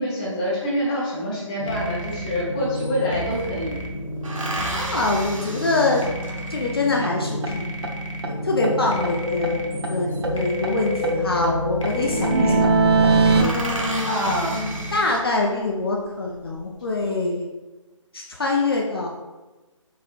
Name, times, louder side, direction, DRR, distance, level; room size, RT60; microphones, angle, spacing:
voice 1, 0.0-3.7 12.3-12.6 14.1-14.5, equal, 10° left, -7 dB, 0.8 m, -25 dB
sound 1, 1.6-15.0, equal, 70° left, 1.3 m, -31 dB
sound 2, 2.1-2.2 2.4-3.5 4.2-6.8 9.4-10.4 11.6-11.9 12.3-12.4 12.7-12.8 13.1-15.6 16.2-16.9, right 2 dB, 75° right, 0.9 m, -34 dB
voice 2, 4.7-6.1 6.5-7.8 8.3-12.7 13.3-17.5 18.1-19.1, left 3 dB, 45° left, -1 dB, 0.5 m, -25 dB
sound 3, 7.0-7.1 7.4-7.5 7.8-7.9 8.2-8.3 8.6-9.9 10.2-13.4, right 3 dB, 50° right, 0.6 m, -22 dB
4.3 x 4.3 x 2.4 m, 1.2 s
hypercardioid pair, 170°, 17 cm